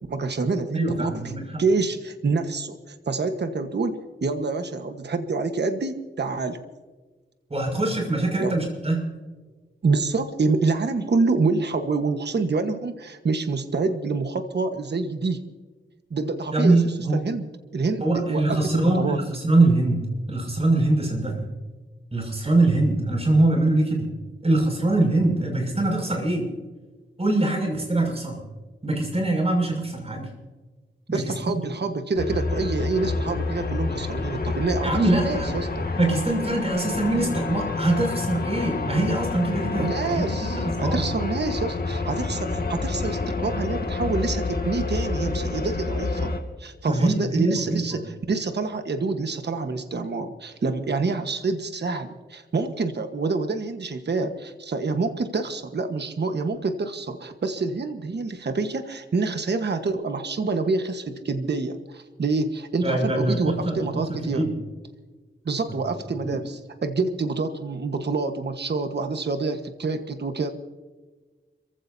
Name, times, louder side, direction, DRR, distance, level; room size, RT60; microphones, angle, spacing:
voice 1, 0.1-1.3 1.6-6.6 8.4-8.6 9.8-15.4 16.1-16.8 17.2-17.5 17.7-19.2 31.1-35.8 39.8-46.3 46.6-64.5 65.4-70.5, right 3 dB, 60° right, 7 dB, 1.3 m, -27 dB
voice 2, 0.7-1.6 7.5-9.0 16.5-17.2 18.0-20.0 20.3-21.5 22.1-24.1 24.4-26.4 27.2-28.4 28.8-30.3 31.1-31.6 34.8-35.6 35.9-41.1 46.9-48.0 62.8-64.0 64.3-64.5 66.2-66.4, right 2 dB, 30° right, 1 dB, 6.3 m, -23 dB
sound 1, 32.2-46.4, left 3 dB, 50° left, 2.3 m, -28 dB
29.5 x 15.5 x 2.8 m, 1.3 s
wide cardioid pair, 95°, 20 cm